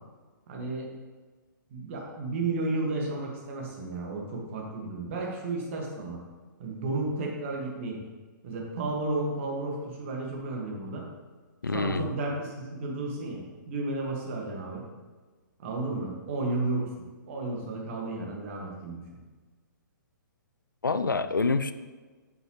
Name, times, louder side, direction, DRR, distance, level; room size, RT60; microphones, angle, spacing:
voice 1, 0.5-0.9 1.7-6.2 6.6-8.0 8.4-11.1 11.6-14.8 15.6-16.9 17.3-19.2, right 2 dB, 40° right, -1 dB, 1.9 m, -33 dB
voice 2, 11.6-12.1 20.8-21.7, left 4 dB, 75° left, 12 dB, 0.5 m, -26 dB
9.0 x 7.7 x 3.2 m, 1.4 s
figure-of-eight pair, 125°, 11 cm